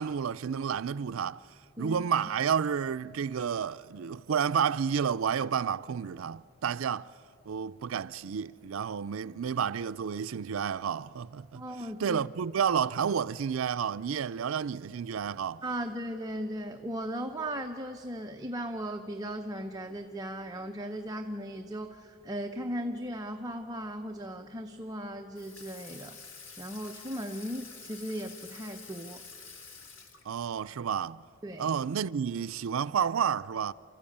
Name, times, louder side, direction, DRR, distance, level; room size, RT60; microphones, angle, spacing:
voice 1, 0.0-1.4 1.8-7.1 7.5-11.6 12.0-15.6 30.3-31.2 31.6-33.7, right 7 dB, 70° right, 0.4 m, -30 dB
voice 2, 11.5-12.2 15.6-26.2 26.6-29.2 31.4-31.7, equal, 20° right, 0.7 m, -37 dB
Water tap faucet / Sink (filling or washing), 25.4-30.6, left 5 dB, 65° left, 1.8 m, -48 dB
29.0 x 14.0 x 8.7 m
head